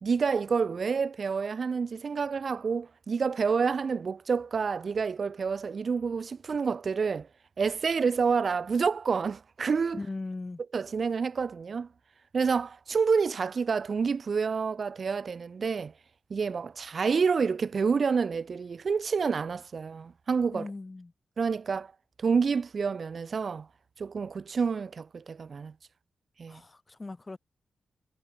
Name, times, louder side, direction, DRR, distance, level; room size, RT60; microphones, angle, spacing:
voice 1, 0.0-7.3 7.6-10.0 10.7-11.9 12.3-15.9 16.3-20.7 21.4-21.9 22.2-23.7 24.0-25.7 26.4-26.6, right 5 dB, 45° right, 0.7 m, -28 dB
voice 2, 9.9-10.6 20.5-21.1 26.5-27.4, left 3 dB, 20° left, 4.6 m, -39 dB
wide cardioid pair, 155°, 0 cm